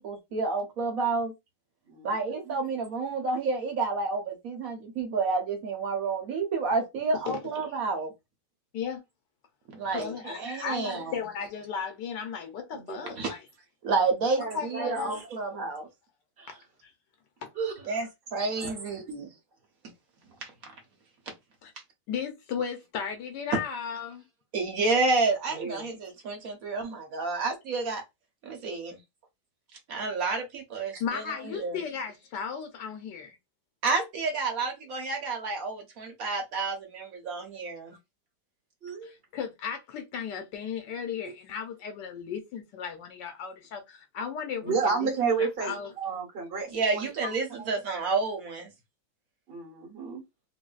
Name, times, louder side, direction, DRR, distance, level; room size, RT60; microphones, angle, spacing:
voice 1, 0.0-1.3 2.0-8.1 9.7-11.1 13.2-13.3 13.8-15.9 17.9-19.3 24.5-28.0 28.4-29.0 29.9-31.2 31.6-31.8 33.8-37.9 46.7-48.7, right 3 dB, 60° right, 1.2 m, -30 dB
voice 2, 1.9-2.6 12.7-13.2 14.4-15.3 16.4-16.6 17.6-18.1 18.6-18.7 25.5-25.9 30.9-31.0 38.8-39.1 41.2-41.3 44.6-47.3 47.6-47.7 49.5-50.2, right 5 dB, 40° right, 1.0 m, -32 dB
voice 3, 9.9-13.4 14.5-15.2 16.5-16.9 17.4-17.5 21.6-21.7 22.1-24.2 31.0-33.4 39.0-45.1 45.4-45.9, left 7 dB, 80° left, 1.3 m, -35 dB
3.9 x 2.6 x 2.3 m
omnidirectional pair, 1.9 m